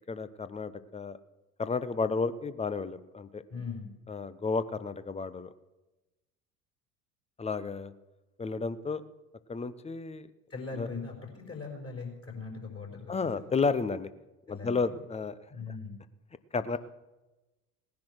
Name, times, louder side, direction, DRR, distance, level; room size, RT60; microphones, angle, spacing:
voice 1, 0.1-1.2 1.6-3.4 4.1-5.5 7.4-7.9 8.4-9.0 9.5-10.3 10.8-10.9 13.1-14.1 14.5-15.3 16.5-16.8, left 4 dB, 15° left, 14 dB, 0.7 m, -32 dB
voice 2, 3.5-3.9 10.5-13.1 14.5-14.9 15.5-16.0, left 4 dB, 30° left, 1 dB, 5.2 m, -40 dB
18.0 x 10.5 x 6.3 m, 1.1 s
figure-of-eight pair, 65°, 47 cm